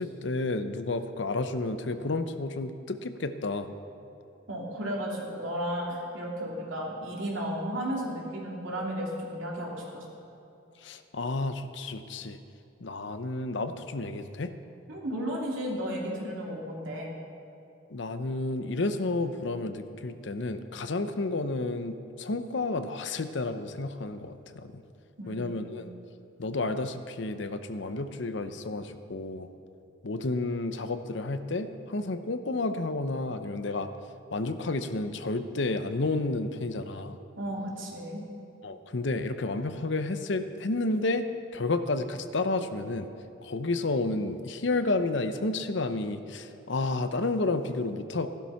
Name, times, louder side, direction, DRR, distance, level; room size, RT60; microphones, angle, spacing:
voice 1, 0.0-3.7 10.8-12.4 12.8-14.5 17.9-24.8 25.3-25.9 26.4-29.5 30.0-33.9 34.3-37.2 38.6-41.3 41.5-43.1 43.4-48.3, left 2 dB, 60° left, 10 dB, 0.7 m, -31 dB
voice 2, 4.5-10.0 14.9-17.1 25.2-25.6 37.4-38.2, equal, 75° right, -3 dB, 3.0 m, -34 dB
15.0 x 12.0 x 5.8 m, 2.8 s
head